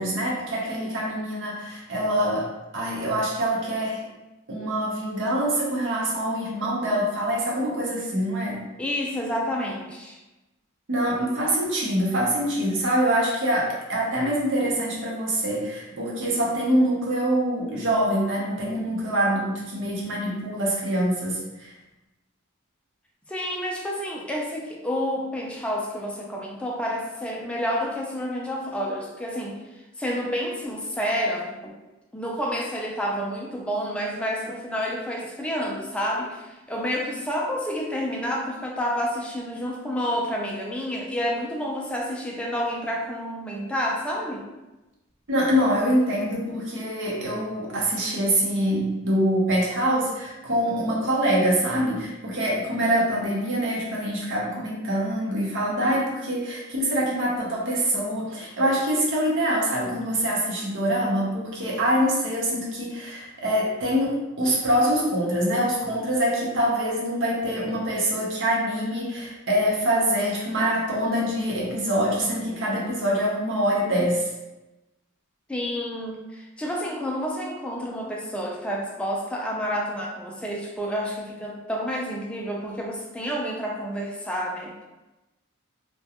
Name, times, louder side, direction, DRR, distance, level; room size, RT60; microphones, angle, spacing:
voice 1, 0.0-4.0 4.5-8.6 10.9-21.7 45.3-74.3, equal, 60° right, -4 dB, 0.7 m, -25 dB
voice 2, 8.8-10.2 23.3-29.6 30.0-31.7 32.1-44.4 46.5-46.6 75.5-84.9, equal, 5° left, -2 dB, 0.3 m, -29 dB
2.3 x 2.2 x 2.8 m, 1.0 s
head